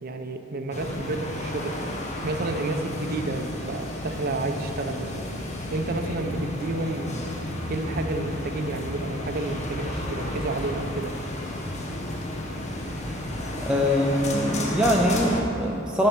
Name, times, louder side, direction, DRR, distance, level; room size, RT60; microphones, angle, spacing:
voice 1, 0.0-1.8 2.2-5.3 5.7-7.3 7.7-11.2, right 2 dB, 50° right, 6 dB, 0.6 m, -30 dB
sound 1, 0.7-15.4, left 1 dB, 35° left, 0.9 m, -32 dB
voice 2, 13.6-16.1, equal, 5° right, -2 dB, 0.5 m, -23 dB
11.0 x 5.4 x 5.9 m, 2.9 s
head